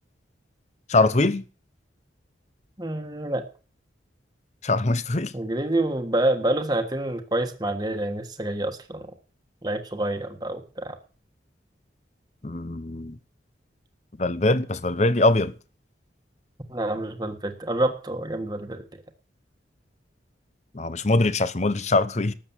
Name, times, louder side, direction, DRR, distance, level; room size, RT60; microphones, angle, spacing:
voice 1, 0.9-1.4 4.6-5.3 12.4-13.2 14.2-15.5 20.7-22.3, left 2 dB, 40° left, 0.8 m, -22 dB
voice 2, 2.8-3.4 5.3-9.1 9.6-11.0 16.7-19.0, right 1 dB, 20° right, 1.4 m, -27 dB
13.0 x 8.2 x 7.3 m
head